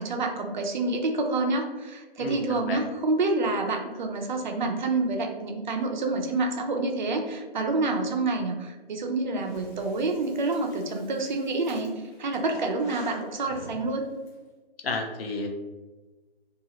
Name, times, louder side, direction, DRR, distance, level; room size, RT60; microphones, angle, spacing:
voice 1, 0.0-11.9 12.2-14.1, right 3 dB, 50° right, 3 dB, 0.5 m, -28 dB
voice 2, 2.2-2.8 14.8-15.5, left 3 dB, 70° left, 3 dB, 0.7 m, -31 dB
Breathing, 9.4-14.3, left 1 dB, 15° left, 0.5 m, -47 dB
2.8 x 2.4 x 2.9 m, 1.2 s
hypercardioid pair, 155°, 30 cm